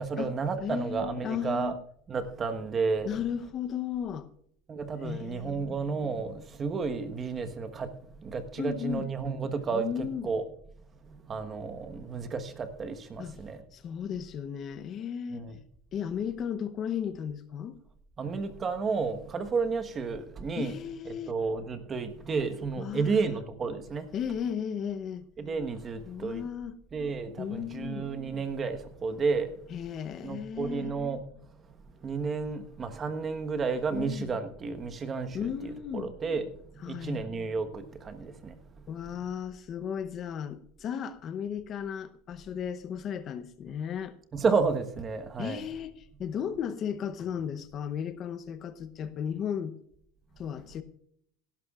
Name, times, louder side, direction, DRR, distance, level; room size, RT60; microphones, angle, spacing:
voice 1, 0.0-1.8 2.1-3.1 4.7-10.4 11.1-13.6 15.3-15.6 18.2-20.8 21.3-24.1 25.4-26.4 26.9-29.5 30.2-31.2 32.0-36.5 36.7-38.6 44.3-45.6, right 4 dB, 25° right, 1.2 m, -32 dB
voice 2, 0.6-1.8 3.0-4.3 5.0-5.8 8.6-9.1 9.7-10.3 13.2-13.4 13.7-15.5 15.9-17.8 20.6-21.3 22.8-23.4 24.1-25.2 26.1-26.8 27.4-28.1 29.7-31.0 33.9-34.3 35.3-36.1 36.8-37.2 38.9-44.1 45.4-49.8 50.4-50.8, left 8 dB, 40° left, 0.8 m, -35 dB
17.5 x 11.5 x 2.4 m
supercardioid pair, 120°, 0 cm